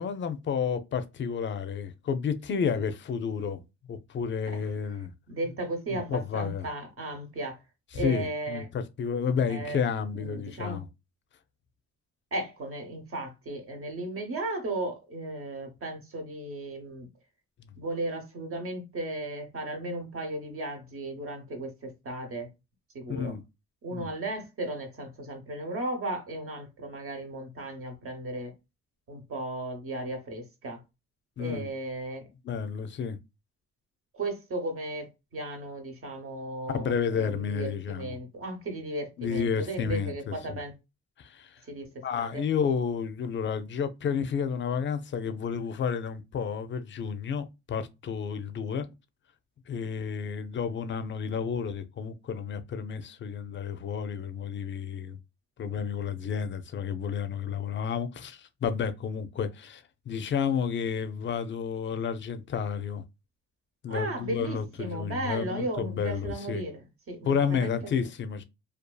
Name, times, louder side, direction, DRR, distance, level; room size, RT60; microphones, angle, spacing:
voice 1, 0.0-3.6 3.9-5.1 5.9-6.7 7.9-10.8 23.1-23.4 23.9-24.1 31.4-31.7 32.4-33.2 36.7-38.2 39.2-40.6 41.2-41.6 42.0-48.9 49.7-55.2 55.6-63.0 63.8-66.6 67.3-68.4, left 6 dB, 40° left, 0.5 m, -31 dB
voice 2, 5.3-7.6 7.9-8.7 9.5-9.8 10.1-10.8 12.3-17.1 17.8-22.5 22.9-23.3 23.8-28.5 29.1-30.8 31.4-32.3 34.1-40.7 41.7-42.4 63.9-68.0, right 2 dB, 45° right, 0.9 m, -35 dB
2.6 x 2.4 x 2.2 m
cardioid pair, 90°, 30 cm